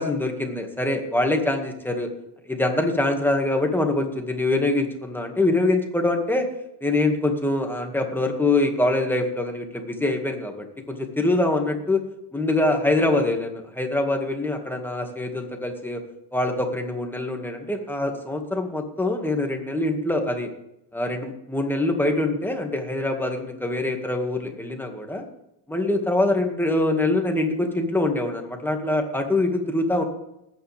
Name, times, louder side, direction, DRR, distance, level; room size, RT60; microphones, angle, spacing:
voice 1, 0.0-2.1 2.5-6.4 6.8-12.0 12.3-16.0 16.3-20.5 20.9-25.2 25.7-30.0, left 2 dB, 5° left, 3 dB, 2.1 m, -24 dB
20.5 x 9.4 x 3.6 m, 0.84 s
cardioid pair, 130°, 41 cm